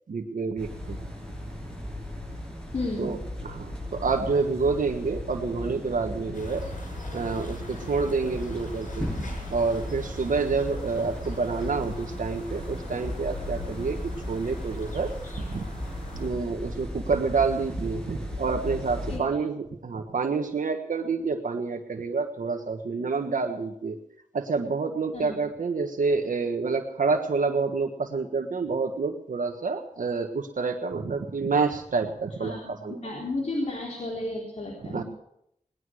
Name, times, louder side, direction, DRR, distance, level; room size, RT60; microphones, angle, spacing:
voice 1, 0.1-1.0 3.0-6.7 7.1-9.1 9.5-14.0 14.3-15.1 15.5-15.7 16.1-24.0 24.3-33.0 34.8-35.0, right 4 dB, 80° right, 5 dB, 1.4 m, -28 dB
sound 1, 0.6-19.2, equal, 5° left, 7.1 m, -36 dB
voice 2, 2.7-3.2 19.1-19.2 25.1-25.4 32.4-32.8 33.0-35.0, left 2 dB, 55° left, -2 dB, 3.8 m, -32 dB
sound 2, 6.3-16.3, left 2 dB, 80° left, 6.8 m, -41 dB
20.0 x 11.0 x 6.4 m, 0.75 s
cardioid pair, 55°, 13 cm